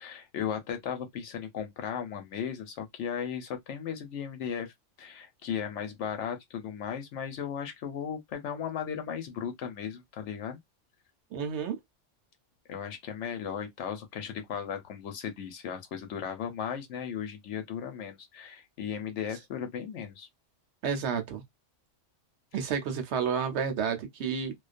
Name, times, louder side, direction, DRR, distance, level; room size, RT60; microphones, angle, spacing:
voice 1, 0.0-10.6 12.7-20.3, left 8 dB, 80° left, 1.0 m, -36 dB
voice 2, 11.3-11.8 20.8-21.4 22.5-24.5, right 6 dB, 70° right, 0.9 m, -30 dB
2.4 x 2.2 x 2.4 m
omnidirectional pair, 1.2 m